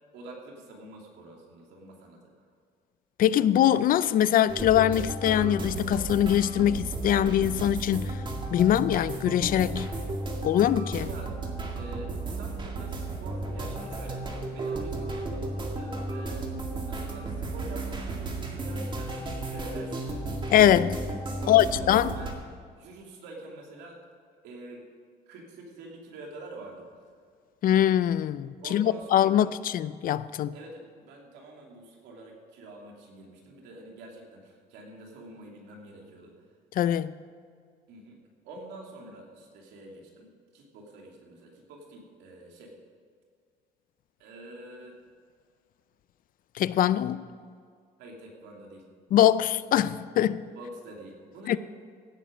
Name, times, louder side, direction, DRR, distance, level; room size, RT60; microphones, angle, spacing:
voice 1, 0.1-2.2 11.0-11.3 11.7-16.5 16.8-20.2 21.4-22.3 22.7-24.0 24.4-24.8 25.3-26.9 28.6-29.5 30.5-36.3 37.9-38.2 38.4-42.7 44.2-44.9 48.0-48.8 50.5-51.6, right 2 dB, 90° right, 2.8 m, -46 dB
voice 2, 3.2-8.2 8.5-9.9 10.4-11.1 20.5-21.0 21.5-22.1 27.6-30.5 36.8-37.1 46.6-47.3 49.1-50.4 51.5-51.6, left 11 dB, 55° left, 0.5 m, -23 dB
sound 1, 4.5-22.3, right 2 dB, 30° right, 2.0 m, -34 dB
16.0 x 9.3 x 5.1 m
cardioid pair, 110°, 17 cm